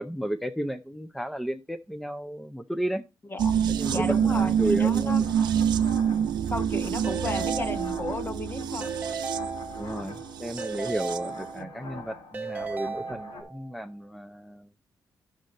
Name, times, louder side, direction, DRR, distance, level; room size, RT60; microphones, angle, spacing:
voice 1, 0.0-3.0 3.7-5.3 9.7-14.7, right 1 dB, ahead, 0.6 m, -33 dB
voice 2, 3.3-5.3 6.5-8.9, left 2 dB, 30° left, 1.2 m, -34 dB
sound 1, 3.4-11.3 11.6-11.7, right 8 dB, 75° right, 0.5 m, -27 dB
sound 2, 3.8-13.4, left 3 dB, 80° left, 3.3 m, -45 dB
Keyboard (musical) / Ringtone, 7.0-8.4 8.8-10.1 10.6-11.9 12.3-13.7, right 4 dB, 25° right, 1.2 m, -36 dB
10.0 x 6.5 x 4.1 m
cardioid pair, 80°, 7 cm